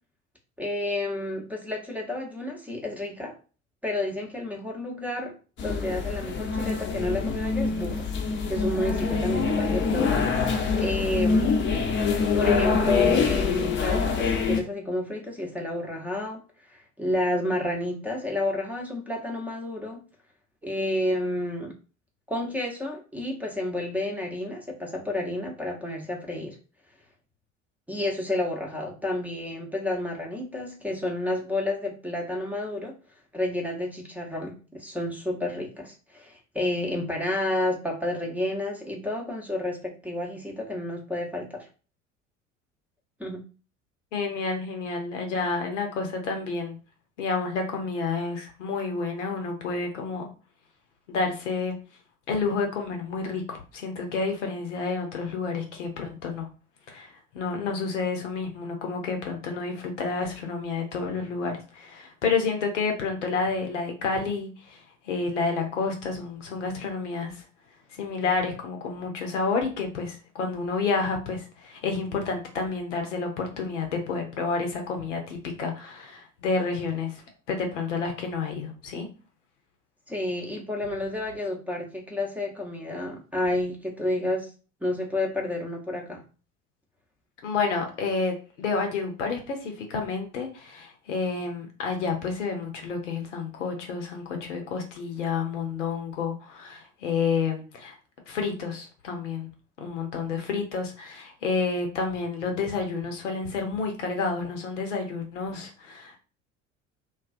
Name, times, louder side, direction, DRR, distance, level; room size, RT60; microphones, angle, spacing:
voice 1, 0.6-3.4 3.8-11.6 12.4-16.4 16.7-20.0 20.6-21.7 22.3-26.6 27.9-32.9 33.3-41.7 43.2-43.4 80.1-84.5 84.8-86.2, left 1 dB, 5° right, 0 dB, 0.7 m, -30 dB
sound 1, 5.6-14.6, left 5 dB, 30° left, 0.6 m, -25 dB
voice 2, 44.1-46.7 47.2-50.3 51.1-51.7 52.3-56.5 56.9-67.4 68.0-77.2 77.5-79.1 87.4-98.0 98.3-99.5 99.8-106.2, left 4 dB, 75° left, 3 dB, 0.7 m, -30 dB
2.3 x 2.3 x 2.5 m, 0.36 s
figure-of-eight pair, 60°, 37 cm